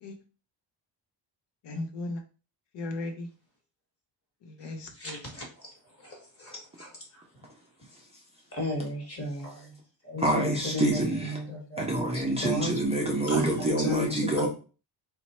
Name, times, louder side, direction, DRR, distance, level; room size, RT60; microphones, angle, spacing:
voice 1, 1.6-2.2 2.7-3.3 4.4-5.2, left 2 dB, 65° left, 0.7 m, -36 dB
voice 2, 5.0-5.4 6.0-6.9 8.5-9.7 10.0-12.1 12.4-12.7 13.3-14.1 14.4-14.5, left 1 dB, 30° left, 1.2 m, -33 dB
voice 3, 10.2-11.4 11.8-14.5, right 2 dB, 15° right, 0.4 m, -27 dB
3.0 x 2.2 x 4.1 m
wide cardioid pair, 175°, 46 cm